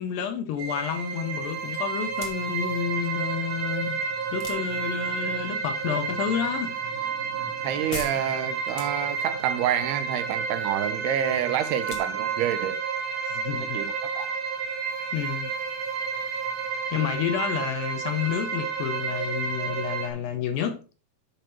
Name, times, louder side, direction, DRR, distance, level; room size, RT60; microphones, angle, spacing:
voice 1, 0.0-6.7 13.3-13.8 15.1-15.5 16.9-20.8, left 8 dB, 80° left, 2.2 m, -30 dB
sound 1, 0.6-20.1, right 6 dB, 65° right, 1.3 m, -31 dB
sound 2, 2.0-14.0, left 5 dB, 55° left, 1.9 m, -46 dB
voice 2, 7.6-12.8 13.6-14.3, right 10 dB, 85° right, 2.8 m, -28 dB
12.0 x 4.4 x 3.0 m
omnidirectional pair, 4.5 m